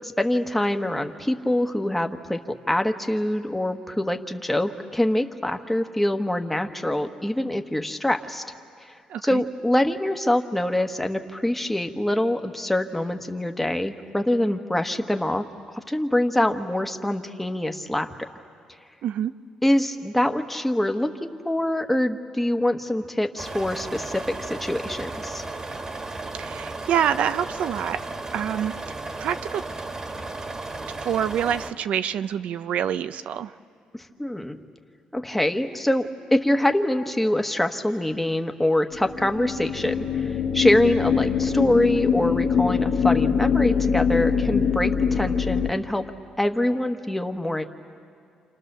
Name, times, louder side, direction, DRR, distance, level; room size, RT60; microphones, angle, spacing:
voice 1, 0.0-2.4 2.7-8.4 9.2-15.4 15.9-18.1 19.6-25.4 34.2-34.6 35.1-40.3 40.5-46.0 46.4-47.6, left 1 dB, 5° left, 5 dB, 1.3 m, -24 dB
voice 2, 9.1-9.4 19.0-19.3 26.4-28.0 28.3-28.7 29.2-29.6 31.0-33.5, right 9 dB, 75° right, 11 dB, 0.7 m, -26 dB
sound 1, 23.4-31.7, right 2 dB, 30° right, 1.7 m, -34 dB
sound 2, 38.9-45.7, left 6 dB, 70° left, 1.5 m, -23 dB
28.5 x 28.0 x 6.8 m, 2.4 s
cardioid pair, 110°, 2 cm